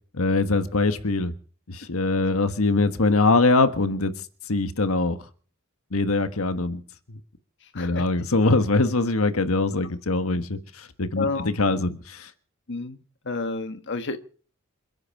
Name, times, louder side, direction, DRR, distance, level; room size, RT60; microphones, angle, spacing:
voice 1, 0.1-1.3 1.7-4.1 4.5-5.2 5.9-6.8 7.7-12.3, left 3 dB, 80° left, 9 dB, 1.4 m, -23 dB
voice 2, 7.6-8.1 11.2-11.5 12.7-13.0 13.2-14.2, left 3 dB, 60° left, 8 dB, 1.4 m, -30 dB
28.0 x 9.8 x 4.8 m, 0.43 s
head